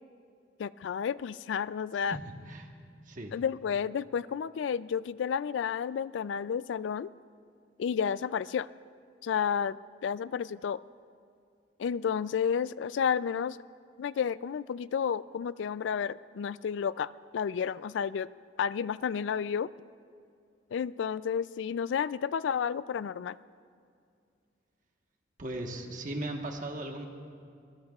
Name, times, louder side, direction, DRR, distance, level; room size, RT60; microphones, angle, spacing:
voice 1, 0.6-2.2 3.3-7.1 7.8-8.7 9.2-10.8 11.8-13.6 14.0-18.3 18.6-19.7 20.7-23.4, left 7 dB, 85° left, 18 dB, 0.3 m, -31 dB
voice 2, 25.4-27.1, right 1 dB, 45° right, 2 dB, 1.3 m, -37 dB
22.5 x 21.0 x 2.4 m, 2.3 s
head